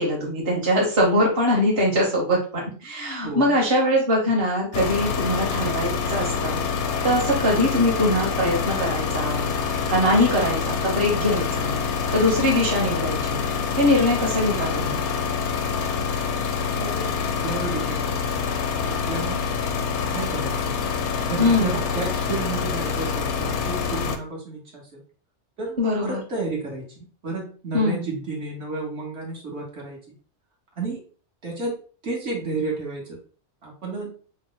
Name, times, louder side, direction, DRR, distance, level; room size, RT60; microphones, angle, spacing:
voice 1, 0.0-6.6 7.0-9.5 9.9-11.8 12.1-13.4 13.8-15.0 21.4-21.8 25.8-26.2 27.7-28.0, left 1 dB, 60° right, -3 dB, 1.5 m, -22 dB
voice 2, 3.2-3.6 16.8-17.1 17.4-18.4 18.8-19.4 20.1-20.7 21.3-25.0 25.6-30.0 30.8-31.0 31.4-33.2 33.6-34.1, right 3 dB, 75° right, -3 dB, 1.5 m, -32 dB
sound 1, 4.7-24.2, left 6 dB, 85° left, 0.9 m, -26 dB
4.7 x 2.0 x 3.8 m, 0.39 s
omnidirectional pair, 1.2 m